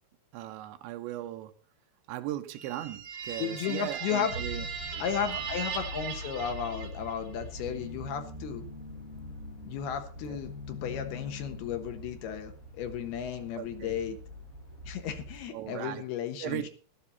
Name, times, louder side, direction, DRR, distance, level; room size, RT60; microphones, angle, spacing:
voice 1, 0.3-1.5 2.1-4.7 4.9-5.3 10.2-10.4 13.6-14.0 15.5-16.1 16.4-16.7, right 13 dB, 75° right, 3.0 m, -38 dB
sound 1, 2.5-7.3, right 6 dB, 60° right, 4.6 m, -38 dB
voice 2, 3.4-4.3 5.0-8.7 9.7-14.2 14.8-16.7, left 8 dB, 65° left, 2.9 m, -34 dB
sound 2, 4.3-15.5, equal, 25° right, 1.8 m, -44 dB
sound 3, 4.5-14.9, left 4 dB, 15° left, 7.3 m, -48 dB
15.0 x 12.0 x 4.1 m
omnidirectional pair, 5.7 m